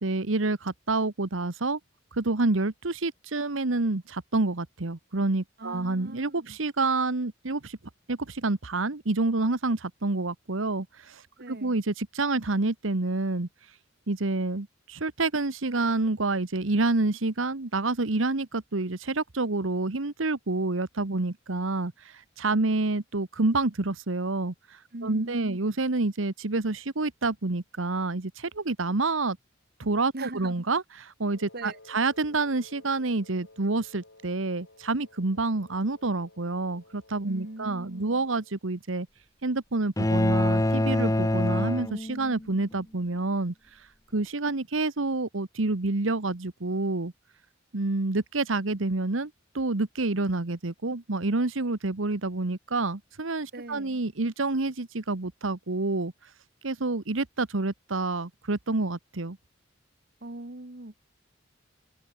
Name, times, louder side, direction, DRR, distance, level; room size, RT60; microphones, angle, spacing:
voice 1, 0.0-1.8 2.1-7.8 8.1-13.5 14.1-29.4 29.8-39.1 39.4-43.9 44.1-47.1 47.7-49.3 49.5-56.3 56.6-59.4, right 3 dB, 75° right, 1.3 m, -28 dB
voice 2, 5.6-6.6 11.4-11.8 24.9-25.6 30.1-30.7 31.5-32.0 37.3-38.3 53.5-54.0 60.2-61.0, right 2 dB, 50° right, 1.8 m, -41 dB
Wind instrument woodwind instrument, 31.3-38.6, left 2 dB, 75° left, 7.1 m, -55 dB
sound 1, 40.0-42.5, left 1 dB, 15° left, 0.8 m, -25 dB
open air
head